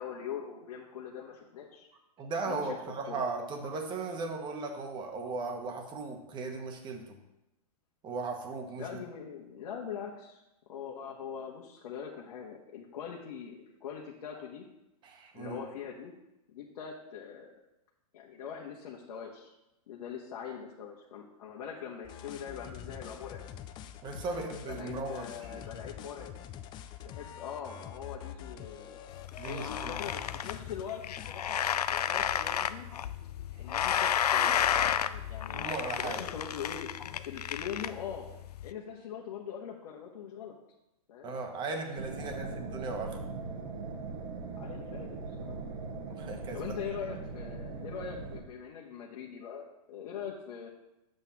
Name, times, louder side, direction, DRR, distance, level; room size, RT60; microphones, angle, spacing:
voice 1, 0.0-1.9 2.4-2.8 3.1-3.2 8.8-10.4 10.7-14.7 15.3-16.1 16.5-17.5 18.1-19.5 19.9-23.4 24.2-26.3 27.0-29.0 29.5-32.9 33.6-36.9 37.2-38.3 38.6-40.5 41.1-41.3 42.2-42.9 44.5-45.6 46.5-50.7, left 7 dB, 65° left, -2 dB, 1.3 m, -42 dB
voice 2, 2.2-7.2 8.0-9.0 15.0-15.6 24.0-25.6 29.4-30.0 35.5-36.2 41.2-43.2 46.1-46.7, right 3 dB, 25° right, 3 dB, 1.3 m, -37 dB
sound 1, 22.0-30.8 31.2-31.3, left 10 dB, 25° left, 0.4 m, -46 dB
sound 2, 29.1-38.7, left 9 dB, 90° left, 0.4 m, -32 dB
sound 3, 42.0-48.4, right 4 dB, 60° right, 1.5 m, -40 dB
9.2 x 7.7 x 3.0 m, 0.91 s
hypercardioid pair, 130°, 20 cm